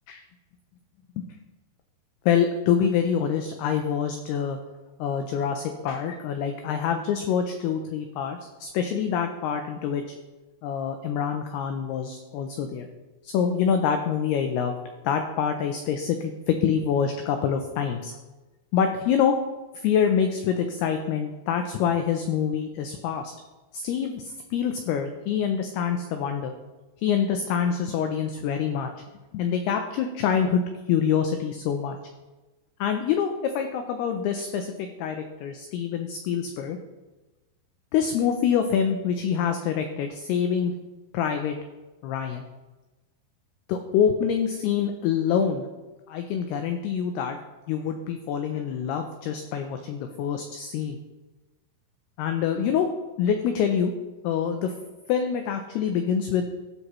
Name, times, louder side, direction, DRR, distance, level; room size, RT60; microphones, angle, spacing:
voice 1, 2.3-4.6 5.0-10.0 10.6-12.9 13.2-14.7 15.0-18.1 18.7-19.4 19.7-23.3 23.7-26.5 27.0-29.0 29.3-30.6 30.9-32.0 32.8-36.8 37.9-40.7 41.1-41.6 42.0-42.4 43.7-45.7 46.1-47.4 47.7-51.0 52.2-52.9 53.2-53.9 54.2-54.7 55.1-56.5, left 7 dB, 90° left, 6 dB, 2.2 m, -26 dB
16.0 x 6.5 x 3.1 m, 1.2 s
omnidirectional pair, 5.4 m